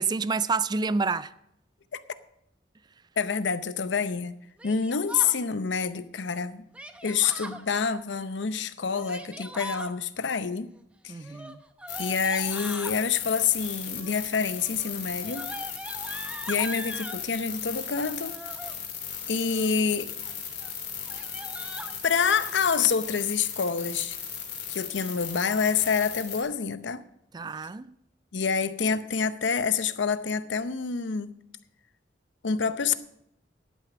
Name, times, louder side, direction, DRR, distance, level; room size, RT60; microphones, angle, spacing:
voice 1, 0.0-1.3 11.1-11.6 27.3-27.9, right 4 dB, 25° right, 0.3 m, -28 dB
voice 2, 3.2-4.4 4.6-6.6 7.0-10.7 11.0-11.3 12.0-15.5 16.5-18.4 19.3-20.1 22.0-24.2 24.7-27.0 28.3-31.4 32.4-32.9, left 6 dB, 90° left, 0.7 m, -27 dB
Yell, 4.6-5.4 6.7-7.6 8.8-9.9 11.2-13.0 13.9-14.3 14.6-17.2 18.2-18.7 19.3-19.8 20.2-20.3 20.6-20.7 21.0-21.9, right 1 dB, 5° right, 0.7 m, -40 dB
sound 1, 11.9-26.4, left 8 dB, 60° left, 3.1 m, -37 dB
11.0 x 9.2 x 6.0 m
head